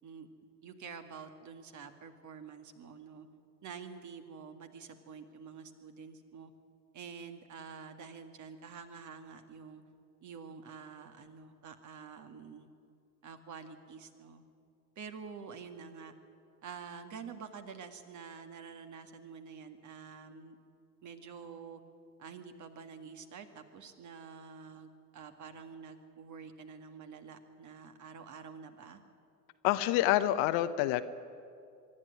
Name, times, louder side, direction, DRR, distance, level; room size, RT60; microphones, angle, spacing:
voice 1, 0.6-3.3 3.6-6.5 6.9-9.8 10.2-12.7 13.2-14.4 15.0-16.1 16.6-20.6 21.0-21.8 22.2-29.0, right 6 dB, 35° right, 7 dB, 2.0 m, -48 dB
voice 2, 29.6-31.0, left 14 dB, 50° left, 12 dB, 1.0 m, -27 dB
24.0 x 11.5 x 9.8 m, 2.4 s
hypercardioid pair, 80°, 48 cm